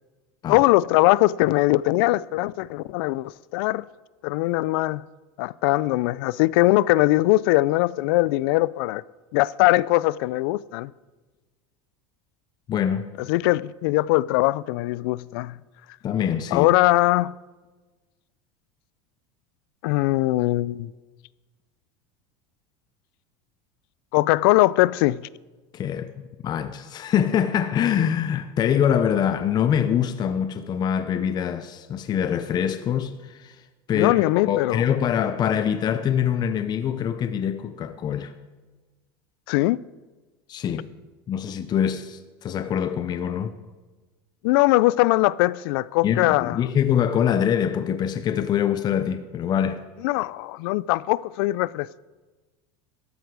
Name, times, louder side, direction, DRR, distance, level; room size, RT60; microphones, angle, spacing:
voice 1, 0.5-3.8 4.2-5.0 5.4-9.0 9.3-10.9 13.3-15.6 16.5-17.3 19.8-20.9 24.1-25.2 33.9-34.8 39.5-39.8 44.4-46.6 50.0-52.0, left 19 dB, 70° left, 0.4 m, -21 dB
voice 2, 12.7-13.1 16.0-16.7 25.7-33.6 33.9-38.3 40.5-40.9 41.3-43.5 46.0-49.8, left 9 dB, 35° left, 0.7 m, -24 dB
13.5 x 11.0 x 4.7 m
supercardioid pair, 120°, 13 cm